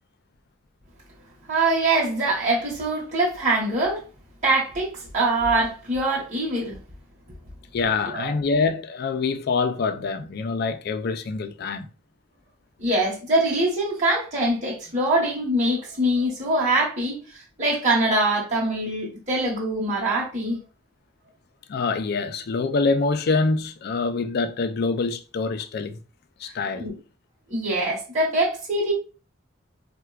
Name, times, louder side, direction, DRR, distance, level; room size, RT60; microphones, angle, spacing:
voice 1, 1.5-4.0 4.4-6.8 8.1-8.3 12.8-17.2 17.6-20.6 26.8-26.9 27.5-28.9, right 2 dB, 35° right, 1.1 m, -23 dB
voice 2, 7.7-11.9 21.7-26.0 26.4-26.9, left 4 dB, 55° left, 0.4 m, -25 dB
4.4 x 2.1 x 2.3 m
head